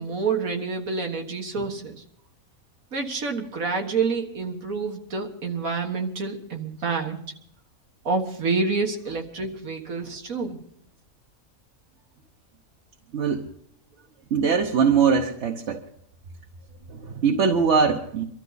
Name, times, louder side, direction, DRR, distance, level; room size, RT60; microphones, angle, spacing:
voice 1, 0.0-2.0 2.9-7.2 8.1-10.6, right 4 dB, 85° right, 3 dB, 2.0 m, -28 dB
voice 2, 13.1-13.5 14.3-15.8 16.9-18.2, right 6 dB, 60° right, 2 dB, 1.2 m, -22 dB
23.5 x 13.0 x 4.0 m, 0.67 s
omnidirectional pair, 1.4 m